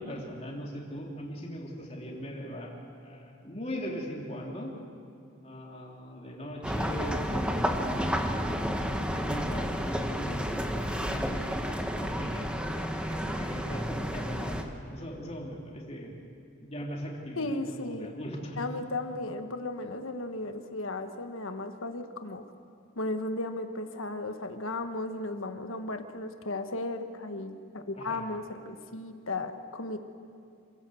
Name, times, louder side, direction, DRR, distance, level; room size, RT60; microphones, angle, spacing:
voice 1, 0.0-2.7 3.0-4.7 5.4-8.6 9.0-16.1 16.6-18.6 28.0-28.2, equal, 30° left, -1 dB, 3.1 m, -40 dB
sound 1, 6.6-14.6, equal, 5° right, 1.2 m, -31 dB
voice 2, 17.4-18.1 18.6-22.4 22.9-30.0, left 2 dB, 80° left, 7 dB, 1.4 m, -35 dB
27.0 x 16.5 x 7.8 m, 2.4 s
head